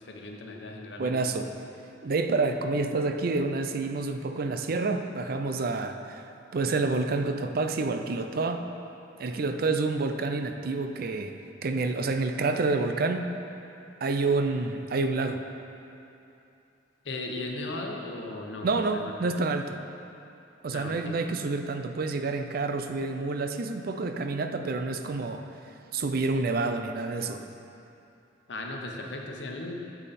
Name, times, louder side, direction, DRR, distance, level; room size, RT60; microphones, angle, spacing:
voice 1, 0.0-1.2 17.0-19.1 20.7-21.2 28.5-29.8, left 2 dB, 75° left, 1 dB, 1.0 m, -37 dB
voice 2, 1.0-1.5 2.0-6.2 6.5-8.6 9.2-11.3 11.6-13.3 14.0-15.4 18.6-19.8 20.6-25.4 25.9-27.4, right 3 dB, 55° right, 7 dB, 0.5 m, -28 dB
8.7 x 7.1 x 4.2 m, 2.7 s
head